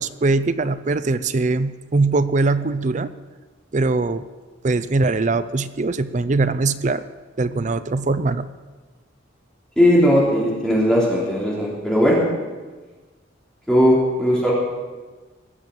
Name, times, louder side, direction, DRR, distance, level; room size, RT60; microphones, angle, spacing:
voice 1, 0.0-3.1 3.7-4.3 4.6-7.0 7.4-8.5, right 3 dB, 40° right, 13 dB, 0.5 m, -21 dB
voice 2, 9.8-12.2 13.7-14.5, equal, 5° left, -5 dB, 3.2 m, -17 dB
18.5 x 7.2 x 7.7 m, 1.3 s
head